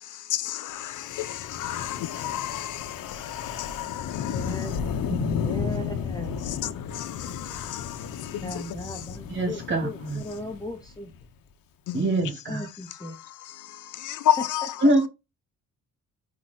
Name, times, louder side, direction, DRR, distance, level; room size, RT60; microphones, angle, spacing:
voice 1, 0.0-4.6 6.4-9.0 11.9-12.1 13.1-14.7, left 12 dB, 65° left, 0.6 m, -32 dB
Wind, 1.0-11.2, left 7 dB, 80° left, 1.2 m, -33 dB
voice 2, 4.3-4.7 5.4-6.3 8.4-11.1 12.5-13.2, left 1 dB, 10° left, 1.0 m, -37 dB
voice 3, 5.1-5.6 9.3-10.2 11.9-12.7 14.8-15.1, right 1 dB, 35° right, 2.5 m, -25 dB
5.2 x 4.7 x 4.3 m
cardioid pair, 150°, 34 cm